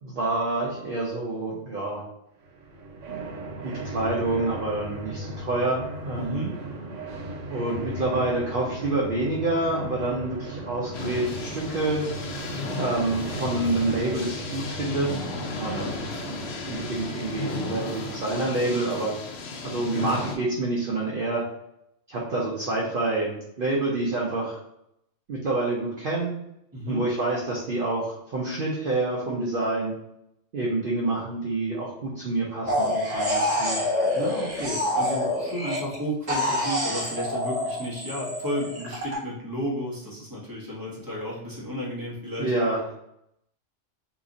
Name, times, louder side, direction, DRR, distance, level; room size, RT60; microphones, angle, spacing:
voice 1, 0.0-2.0 3.1-3.3 3.6-6.4 7.5-12.0 12.8-15.1 15.6-15.9 16.3-19.2 19.6-21.4 22.1-24.6 25.3-26.3 26.9-29.9 30.5-33.8 42.4-43.0, right 2 dB, 55° right, -4 dB, 0.7 m, -27 dB
sound 1, 2.4-18.2, right 1 dB, 80° right, 1.0 m, -37 dB
voice 2, 6.2-6.6 15.7-16.1 26.7-27.1 34.1-42.5, equal, 20° right, -5 dB, 1.0 m, -33 dB
sound 2, 10.9-20.4, left 4 dB, 65° left, 0.8 m, -35 dB
sound 3, 32.7-36.0 36.3-39.2, left 1 dB, 35° right, 1.3 m, -26 dB
2.9 x 2.4 x 3.7 m, 0.79 s
omnidirectional pair, 1.3 m